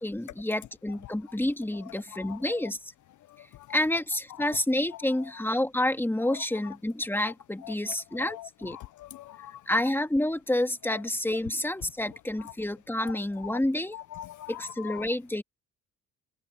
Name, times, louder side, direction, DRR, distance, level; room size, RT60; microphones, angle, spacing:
voice 1, 0.0-2.8 3.7-8.8 9.7-14.0 14.5-15.4, left 1 dB, 5° left, 2.0 m, -29 dB
voice 2, 2.1-2.6 3.5-3.7 7.2-7.3 7.6-7.7 8.2-9.6 13.0-13.1 13.4-13.6 13.9-15.0, left 13 dB, 55° left, 0.6 m, -42 dB
supercardioid pair, 75°, 35 cm